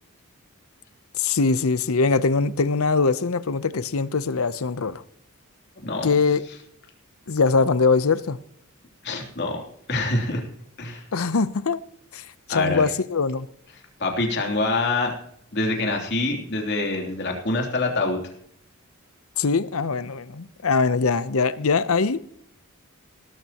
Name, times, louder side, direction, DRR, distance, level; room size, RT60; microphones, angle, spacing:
voice 1, 1.1-5.0 6.0-6.4 7.3-8.4 11.1-11.8 12.1-13.5 19.4-22.2, left 4 dB, 75° left, 15 dB, 0.7 m, -22 dB
voice 2, 9.0-9.6 9.9-10.4 10.8-11.0 12.5-12.8 14.0-15.1 15.5-18.2, left 2 dB, 50° left, 1 dB, 3.2 m, -25 dB
18.0 x 13.5 x 3.0 m, 0.69 s
head